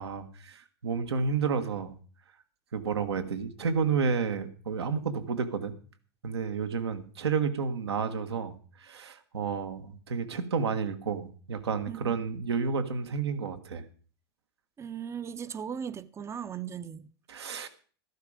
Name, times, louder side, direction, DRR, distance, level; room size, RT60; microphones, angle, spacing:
voice 1, 0.0-2.0 2.7-5.8 6.2-13.8 17.3-17.7, right 5 dB, 85° right, 1.5 m, -31 dB
voice 2, 14.8-17.1, right 8 dB, 20° right, 0.7 m, -38 dB
13.0 x 11.5 x 5.0 m
hypercardioid pair, 100°, 13 cm